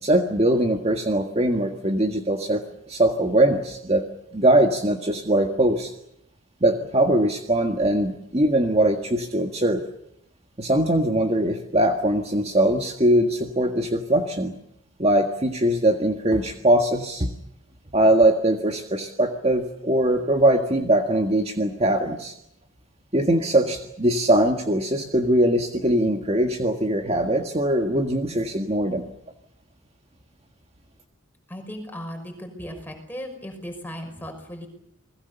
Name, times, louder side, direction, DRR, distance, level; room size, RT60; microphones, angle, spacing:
voice 1, 0.0-4.0 4.3-5.9 6.6-9.8 10.6-14.5 15.0-17.3 17.9-22.3 23.1-29.0, right 1 dB, 30° right, 4 dB, 1.8 m, -21 dB
voice 2, 31.5-34.7, equal, 10° left, 4 dB, 5.9 m, -36 dB
28.5 x 21.0 x 7.0 m, 0.76 s
head